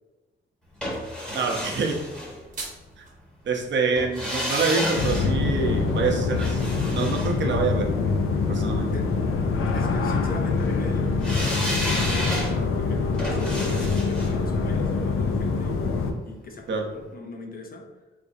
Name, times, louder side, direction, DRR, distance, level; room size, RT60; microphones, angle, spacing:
sound 1, 0.8-2.9 4.0-8.2 11.2-16.2 16.5-16.6, equal, 5° left, 1.0 m, -32 dB
voice 1, 1.3-2.0 3.0-3.1 3.4-6.6 6.9-7.9 8.5-8.9 16.7-16.8, right 4 dB, 60° right, 2 dB, 0.7 m, -26 dB
sound 2, 2.1-3.1, right 3 dB, 40° right, 1.0 m, -39 dB
sound 3, 5.0-16.1, left 4 dB, 80° left, 0.5 m, -25 dB
voice 2, 9.7-15.9 16.2-17.9, left 3 dB, 45° left, 2 dB, 0.7 m, -38 dB
3.7 x 3.3 x 2.6 m, 1.1 s
cardioid pair, 95°, 21 cm